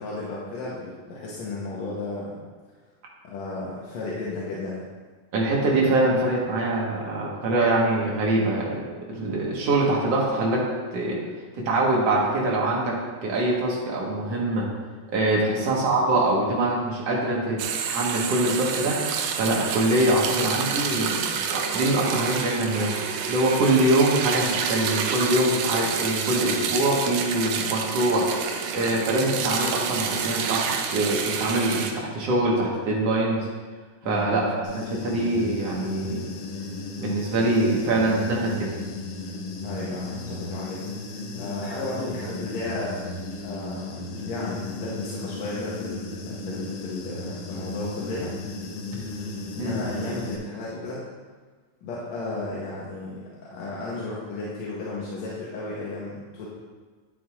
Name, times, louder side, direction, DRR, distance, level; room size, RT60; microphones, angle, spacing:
voice 1, 0.0-2.4 3.2-4.9 15.3-15.6 34.0-34.4 39.6-43.0 43.4-48.3 49.2-51.1 51.8-56.5, left 2 dB, 70° left, -6 dB, 2.1 m, -34 dB
voice 2, 5.3-8.8 9.2-10.7 10.9-11.2 11.5-13.0 13.2-14.7 15.1-17.6 17.8-19.0 19.3-22.9 23.3-33.5 34.0-36.2 37.0-38.7 49.6-49.8, right 2 dB, 55° right, -4 dB, 2.3 m, -24 dB
sound 1, 17.6-31.9, right 6 dB, 80° right, 1.6 m, -28 dB
Human voice / Buzz, 34.6-50.4, left 2 dB, 85° left, 2.5 m, -35 dB
10.0 x 7.9 x 2.5 m, 1.4 s
omnidirectional pair, 3.7 m